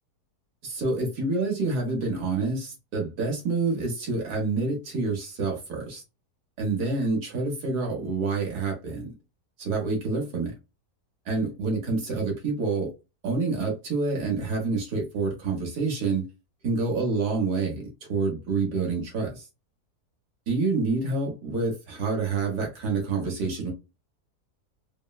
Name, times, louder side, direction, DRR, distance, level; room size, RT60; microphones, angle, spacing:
voice 1, 0.6-6.0 6.6-9.1 9.6-10.5 11.3-12.9 13.2-16.3 16.6-19.4 20.5-23.7, right 3 dB, 85° right, 1.8 m, -27 dB
4.4 x 2.1 x 2.3 m
omnidirectional pair, 1.7 m